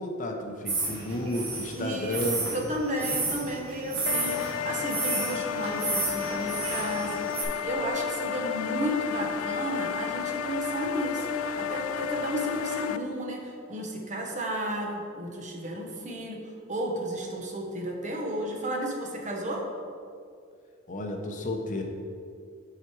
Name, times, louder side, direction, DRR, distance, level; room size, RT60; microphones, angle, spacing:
voice 1, 0.0-2.4 20.9-21.8, left 1 dB, 40° left, 3 dB, 0.7 m, -32 dB
sound 1, 0.7-7.4, right 3 dB, 75° right, 1.7 m, -32 dB
voice 2, 1.7-2.2 2.5-16.4 16.7-19.6, equal, 35° right, 0 dB, 1.0 m, -33 dB
sound 2, 4.1-13.0, left 8 dB, 80° left, 0.3 m, -32 dB
7.4 x 4.9 x 4.7 m, 2.3 s
head